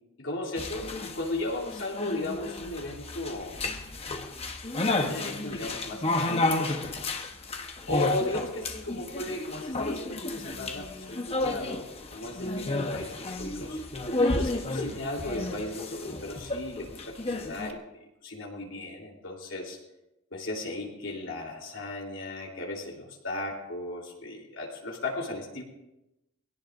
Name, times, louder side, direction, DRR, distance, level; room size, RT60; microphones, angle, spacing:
voice 1, 0.2-3.6 5.0-7.0 7.9-13.8 14.3-17.8 18.2-19.8 20.3-25.6, left 2 dB, 65° left, -1 dB, 3.6 m, -36 dB
sound 1, 0.6-17.7, left 2 dB, 30° left, 1.0 m, -32 dB
23.0 x 17.5 x 2.6 m, 0.93 s
head